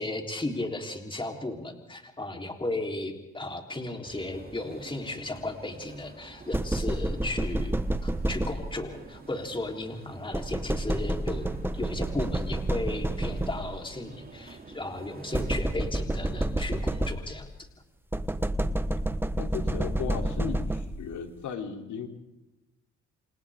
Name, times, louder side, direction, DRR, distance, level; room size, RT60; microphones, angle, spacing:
voice 1, 0.0-7.8 8.0-17.7, left 2 dB, 15° left, 3 dB, 3.7 m, -35 dB
sound 1, 4.0-15.7, right 3 dB, 30° right, 3.5 m, -49 dB
sound 2, 6.5-9.0 10.3-13.9 15.3-17.5 18.1-21.2, right 1 dB, 5° right, 1.2 m, -29 dB
voice 2, 19.4-22.1, left 7 dB, 75° left, 4 dB, 3.3 m, -36 dB
29.0 x 28.0 x 3.7 m, 0.97 s
cardioid pair, 90°, 30 cm